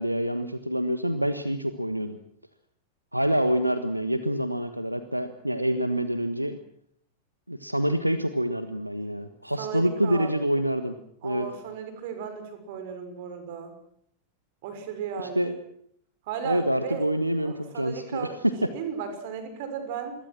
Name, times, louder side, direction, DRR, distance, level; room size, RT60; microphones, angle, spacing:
voice 1, 0.0-2.2 3.1-6.6 7.5-11.0 11.2-11.5 15.3-15.5 16.4-18.7, equal, 90° right, 11 dB, 1.3 m, -26 dB
voice 2, 9.6-10.3 11.2-13.7 14.6-15.5 16.3-17.0 17.4-18.4 18.6-20.1, right 7 dB, 50° right, 7 dB, 6.1 m, -35 dB
27.5 x 22.0 x 6.2 m, 0.68 s
figure-of-eight pair, 90°, 0 cm